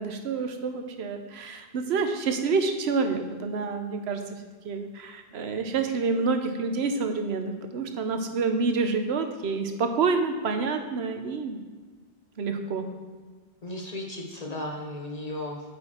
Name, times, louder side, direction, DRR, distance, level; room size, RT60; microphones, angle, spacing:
voice 1, 0.0-4.4 4.6-11.6 12.4-12.9, right 4 dB, 80° right, 7 dB, 1.0 m, -28 dB
voice 2, 13.6-15.6, left 1 dB, 45° left, 1 dB, 0.8 m, -35 dB
8.7 x 4.8 x 4.3 m, 1.4 s
omnidirectional pair, 1.1 m